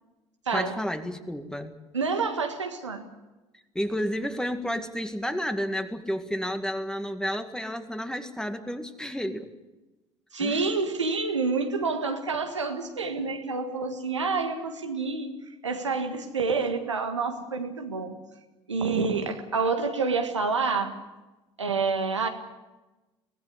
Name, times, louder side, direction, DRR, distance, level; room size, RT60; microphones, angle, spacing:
voice 1, 0.5-1.7 3.7-9.5 10.4-10.6, equal, 5° left, 8 dB, 2.1 m, -31 dB
voice 2, 1.9-3.0 10.3-15.3 15.6-18.2 18.7-20.9 21.6-22.3, right 4 dB, 90° right, 5 dB, 1.7 m, -28 dB
24.0 x 17.5 x 8.3 m, 1.1 s
figure-of-eight pair, 60°, 15 cm